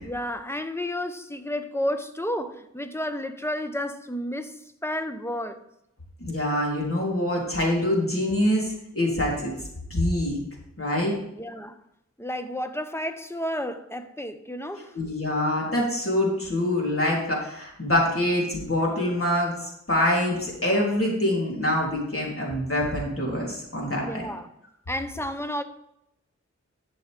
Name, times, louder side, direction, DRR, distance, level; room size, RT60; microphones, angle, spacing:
voice 1, 0.0-5.6 11.3-11.8 12.2-14.9 24.0-24.5 24.9-25.6, left 1 dB, 10° left, 0.9 m, -31 dB
voice 2, 6.2-9.5 9.9-10.4 10.8-11.2 14.9-24.2, left 1 dB, 45° left, 3.4 m, -25 dB
11.5 x 7.0 x 3.4 m
wide cardioid pair, 50°, 30 cm